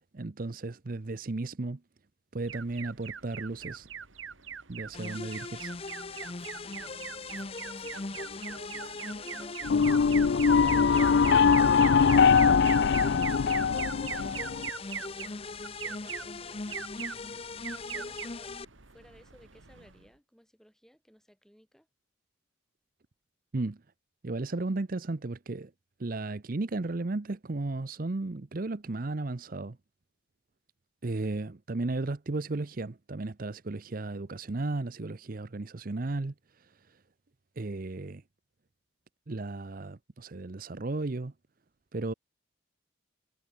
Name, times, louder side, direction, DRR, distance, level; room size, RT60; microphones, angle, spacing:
voice 1, 0.1-1.8 2.3-3.9 4.7-5.7 23.5-23.8 24.2-25.7 26.0-29.8 31.0-36.3 36.6-36.7 37.6-38.2 39.3-41.3 41.9-42.1, right 2 dB, 45° right, 0.7 m, -34 dB
Alarm, 2.5-20.1, right 7 dB, 80° right, 2.1 m, -41 dB
sound 1, 4.9-18.6, left 3 dB, 30° left, 0.7 m, -40 dB
voice 2, 7.5-7.9 15.0-15.4 15.7-16.7 17.5-18.5 18.9-21.9, equal, ahead, 7.5 m, -59 dB
sound 2, 9.6-14.7, left 6 dB, 60° left, 0.4 m, -22 dB
head